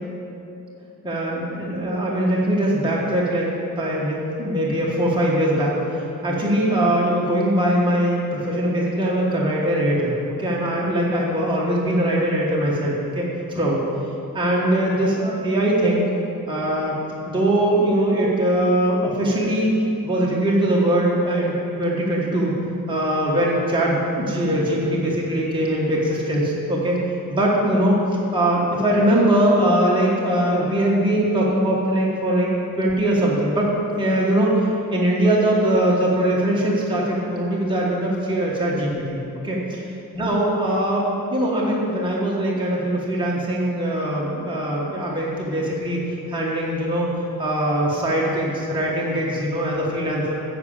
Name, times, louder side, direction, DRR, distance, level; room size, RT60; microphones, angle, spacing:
voice 1, 1.0-3.5 3.8-10.1 10.4-13.8 14.3-16.0 16.5-16.9 17.3-19.7 20.0-21.5 21.8-22.5 22.9-27.0 27.3-28.0 28.3-33.7 34.0-39.2 39.4-39.8 40.1-41.0 41.3-46.0 46.3-47.1 47.4-50.3, right 1 dB, 15° right, -5 dB, 1.3 m, -21 dB
10.5 x 5.1 x 7.0 m, 2.9 s
wide cardioid pair, 145°, 36 cm